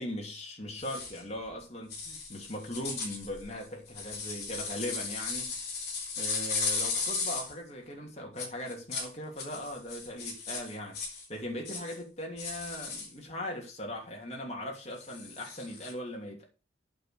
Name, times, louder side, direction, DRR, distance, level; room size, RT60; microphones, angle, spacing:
voice 1, 0.0-5.6 6.2-11.0 11.3-16.5, left 1 dB, 35° left, 3.0 m, -39 dB
sound 1, 0.8-1.2 1.9-7.5 8.4-9.1 9.4-11.3 11.6-12.0 12.4-13.1 15.0-15.9, left 4 dB, 55° left, 3.5 m, -36 dB
8.5 x 6.1 x 6.6 m
head